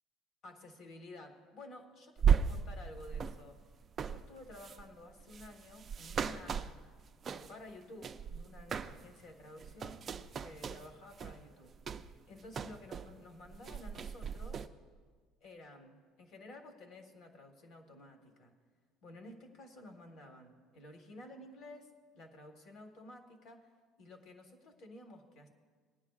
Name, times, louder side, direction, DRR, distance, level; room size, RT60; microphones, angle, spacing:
voice 1, 0.4-3.6 4.0-6.8 7.3-10.1 10.4-11.8 12.0-14.7 15.4-18.5 19.0-23.7 24.0-25.5, left 1 dB, 50° left, 5 dB, 1.5 m, -53 dB
sound 1, 2.2-7.7 8.0-9.2 9.5-13.2 13.4-14.7, right 7 dB, 30° right, 0.4 m, -36 dB
19.5 x 10.5 x 2.4 m, 1.5 s
cardioid pair, 140°, 0 cm